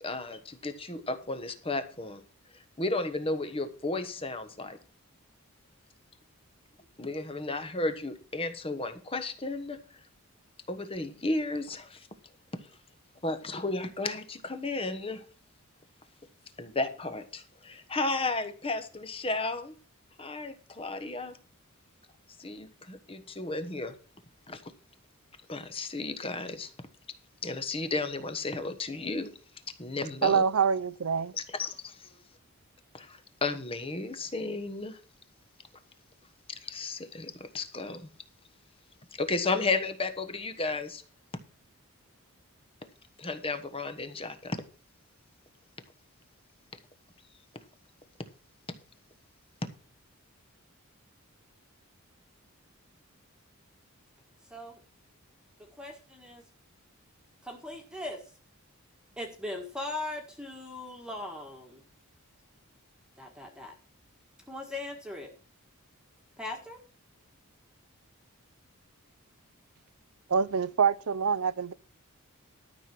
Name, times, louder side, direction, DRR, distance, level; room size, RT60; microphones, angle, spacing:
voice 1, 0.0-2.2 2.8-4.8 7.0-9.8 10.7-12.1 12.5-12.6 13.2-15.2 16.6-19.7 20.2-21.4 22.4-23.9 24.5-24.7 25.5-26.7 27.4-29.4 29.8-30.4 31.5-32.1 32.9-35.0 36.5-38.1 39.2-41.0 43.2-44.6, left 3 dB, 25° left, 1.1 m, -33 dB
voice 2, 30.2-31.3 70.3-71.7, right 6 dB, 75° right, 0.6 m, -25 dB
voice 3, 54.5-54.8 55.7-56.4 57.4-58.3 59.2-61.8 63.2-63.7 64.5-65.3 66.4-66.8, left 2 dB, 5° right, 1.7 m, -39 dB
13.0 x 6.1 x 6.0 m
head